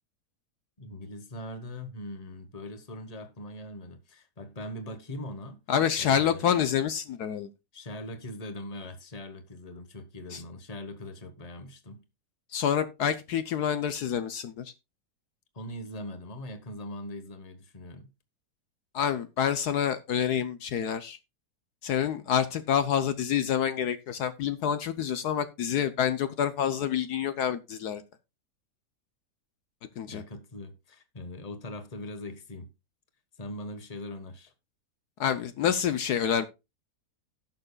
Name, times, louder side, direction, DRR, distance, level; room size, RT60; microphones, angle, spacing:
voice 1, 0.8-5.6 6.0-6.5 7.7-12.0 15.5-18.1 30.1-32.7 33.4-34.5, left 1 dB, 25° left, 1.3 m, -41 dB
voice 2, 5.7-7.5 10.3-10.4 12.5-14.7 18.9-21.2 21.8-28.0 30.0-30.2 35.2-36.5, left 8 dB, 70° left, 1.2 m, -27 dB
17.0 x 6.7 x 2.3 m
omnidirectional pair, 1.8 m